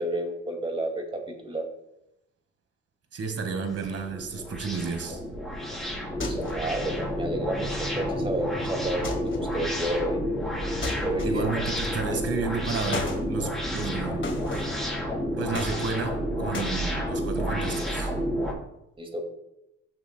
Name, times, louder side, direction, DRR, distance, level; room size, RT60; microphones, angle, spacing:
voice 1, 0.0-1.7 6.3-10.2 11.0-11.5 12.1-12.2 19.0-19.2, right 1 dB, 15° right, 3 dB, 2.2 m, -31 dB
voice 2, 3.1-5.2 11.2-14.3 15.4-18.1, right 5 dB, 50° right, 6 dB, 1.7 m, -32 dB
sound 1, 3.4-18.5, equal, ahead, 3.6 m, -30 dB
sound 2, 6.2-6.7 9.0-9.5 10.8-11.6 12.9-13.2 14.2-14.8 15.5-16.2 16.5-16.8, left 3 dB, 40° left, 2.0 m, -34 dB
14.5 x 6.9 x 2.2 m, 0.85 s
cardioid pair, 90°, 30 cm